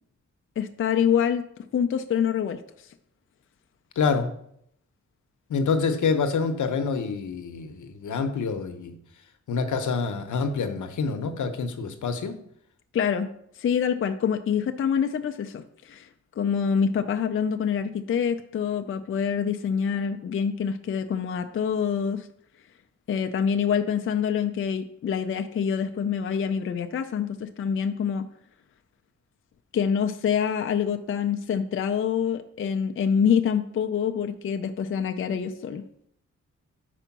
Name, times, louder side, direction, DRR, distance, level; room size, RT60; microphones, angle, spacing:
voice 1, 0.6-1.5 1.7-2.6 12.9-13.3 13.6-16.1 16.4-22.3 23.1-28.3 29.7-35.8, left 7 dB, 45° left, 6 dB, 0.4 m, -26 dB
voice 2, 4.0-4.3 5.5-9.0 9.5-12.4, left 5 dB, 85° left, 7 dB, 0.8 m, -27 dB
5.0 x 4.5 x 5.8 m, 0.70 s
wide cardioid pair, 155°, 30 cm